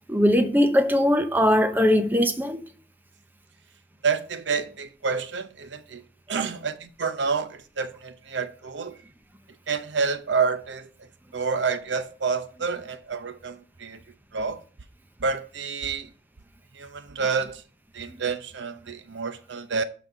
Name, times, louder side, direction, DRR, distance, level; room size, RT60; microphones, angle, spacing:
voice 1, 0.1-2.6 18.1-18.2, equal, 10° right, 0.8 m, -20 dB
voice 2, 4.0-6.0 6.3-9.0 9.7-10.9 11.3-14.0 14.3-14.6 15.2-16.1 16.8-17.6 17.9-19.8, right 5 dB, 75° right, 0.8 m, -28 dB
12.0 x 4.2 x 6.0 m
head